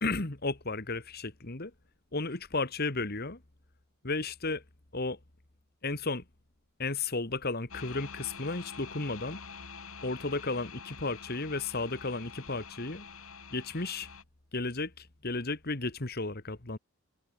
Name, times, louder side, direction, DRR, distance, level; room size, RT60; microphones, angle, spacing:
voice 1, 0.0-1.7 2.1-3.4 4.0-4.6 4.9-5.2 5.8-6.2 6.8-9.4 10.0-13.1 13.5-14.1 14.5-16.8, left 3 dB, 45° left, 1.8 m, -33 dB
sound 1, 7.7-14.2, left 5 dB, 90° left, 5.6 m, -46 dB
head